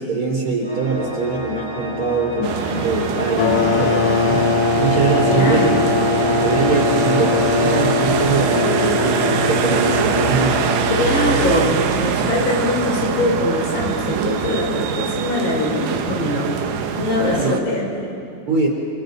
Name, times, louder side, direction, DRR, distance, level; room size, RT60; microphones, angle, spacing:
voice 1, 0.0-4.4 4.8-5.8 6.3-10.6 17.3-17.6 18.5-18.7, right 4 dB, 35° right, -3 dB, 4.1 m, -22 dB
Organ, 0.6-11.5, equal, 10° left, 1.4 m, -31 dB
sound 1, 2.4-17.6, right 7 dB, 70° right, 2.2 m, -23 dB
sound 2, 3.4-11.8, left 4 dB, 60° left, 2.6 m, -21 dB
voice 2, 5.3-5.8 10.9-16.5 17.0-18.2, left 2 dB, 75° left, -3 dB, 7.4 m, -22 dB
30.0 x 28.5 x 4.0 m, 2.6 s
omnidirectional pair, 4.7 m